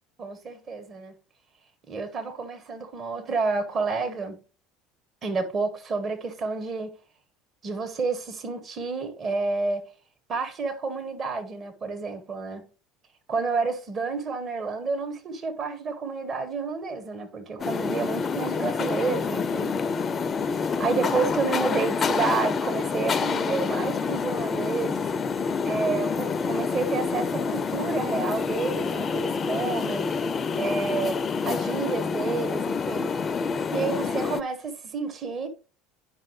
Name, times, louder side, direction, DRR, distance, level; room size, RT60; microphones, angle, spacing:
voice 1, 0.2-1.1 1.9-4.4 5.2-7.0 7.6-9.9 10.3-12.7 13.3-19.8 20.8-25.1 25.6-30.1 30.5-33.1 33.5-35.5, right 4 dB, 40° right, 1.5 m, -30 dB
sound 1, 17.6-34.4, left 5 dB, 35° left, 0.5 m, -27 dB
9.7 x 5.6 x 3.2 m
hypercardioid pair, 70°, 0 cm